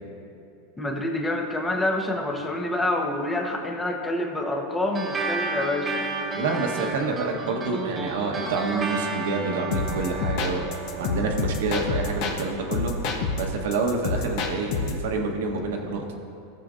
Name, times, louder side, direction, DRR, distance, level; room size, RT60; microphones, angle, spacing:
voice 1, 0.8-6.1, left 1 dB, 10° left, 2 dB, 1.0 m, -27 dB
sound 1, 4.9-13.8, right 3 dB, 20° right, 1.1 m, -33 dB
voice 2, 6.3-10.6 11.0-12.9 13.4-16.2, right 3 dB, 80° right, 2 dB, 1.1 m, -28 dB
sound 2, 9.7-12.4 12.7-15.0, left 3 dB, 55° left, 1.0 m, -28 dB
16.0 x 6.8 x 2.5 m, 2.7 s
supercardioid pair, 130°, 0 cm